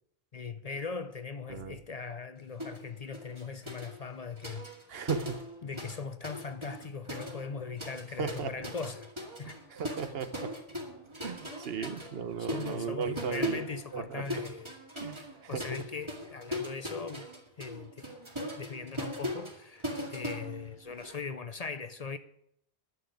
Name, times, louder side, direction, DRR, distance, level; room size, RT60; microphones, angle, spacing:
voice 1, 0.3-4.7 5.6-9.1 9.4-9.6 11.8-11.9 12.4-14.7 15.5-17.3 17.6-18.1 18.4-22.2, left 5 dB, 45° left, 0.6 m, -40 dB
sound 1, 2.6-2.8 3.1-6.0 6.2-21.2, equal, 30° right, 2.2 m, -40 dB
voice 2, 4.9-5.4 8.2-8.7 9.4-10.5 11.2-13.6 13.9-14.2 15.0-15.6, right 7 dB, 75° right, 1.1 m, -36 dB
11.0 x 7.2 x 9.2 m
omnidirectional pair, 1.0 m